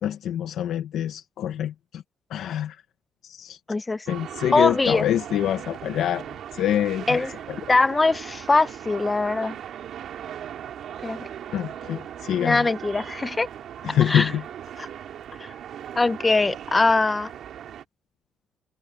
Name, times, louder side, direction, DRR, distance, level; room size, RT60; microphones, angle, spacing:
voice 1, 0.0-2.0 2.3-2.8 3.2-3.6 4.1-6.2 6.5-7.2 7.5-7.6 11.5-12.7 13.8-14.4, left 11 dB, 80° left, 1.1 m, -25 dB
voice 2, 3.7-4.1 4.5-5.0 7.1-7.3 7.7-9.6 11.0-11.3 12.4-13.5 14.1-14.3 14.8-14.9 15.4-15.5 15.9-17.3, left 3 dB, 20° left, 1.4 m, -22 dB
sound 1, 4.1-17.8, right 10 dB, 70° right, 2.9 m, -38 dB
cardioid pair, 90°, 0 cm